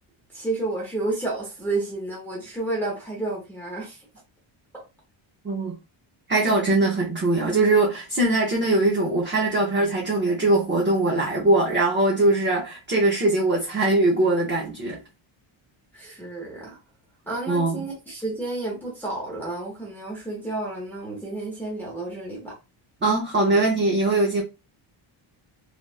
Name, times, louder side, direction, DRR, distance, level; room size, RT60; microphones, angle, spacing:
voice 1, 0.3-4.0 15.9-16.8 17.3-22.5, right 2 dB, 5° left, 0.9 m, -31 dB
voice 2, 5.4-5.8 6.3-15.0 17.5-17.8 23.0-24.4, right 2 dB, 25° right, 0.6 m, -21 dB
3.4 x 2.4 x 2.4 m
cardioid pair, 175°, 50 cm